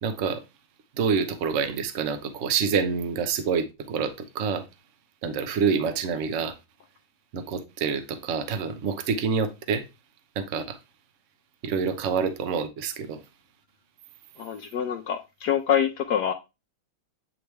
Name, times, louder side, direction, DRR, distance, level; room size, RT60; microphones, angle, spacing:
voice 1, 0.0-0.4 0.9-4.6 5.2-6.6 7.3-9.8 10.4-10.8 11.6-13.2, right 6 dB, 55° right, 0.8 m, -27 dB
voice 2, 14.4-16.3, left 9 dB, 70° left, 1.0 m, -25 dB
8.9 x 3.3 x 3.2 m
omnidirectional pair, 2.3 m